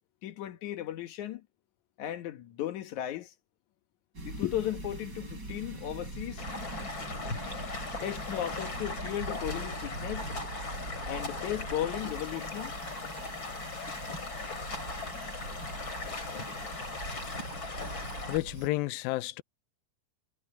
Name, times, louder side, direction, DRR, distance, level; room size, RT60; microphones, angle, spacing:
voice 1, 0.2-1.5 2.0-3.3 4.2-6.4 8.0-10.3 11.0-12.7, left 12 dB, 65° left, 2.4 m, -35 dB
sound 1, 4.1-18.7, right 2 dB, 25° right, 7.0 m, -42 dB
Stream, 6.4-18.4, left 3 dB, 35° left, 4.8 m, -39 dB
voice 2, 18.3-19.4, left 18 dB, 85° left, 2.5 m, -31 dB
omnidirectional pair, 4.1 m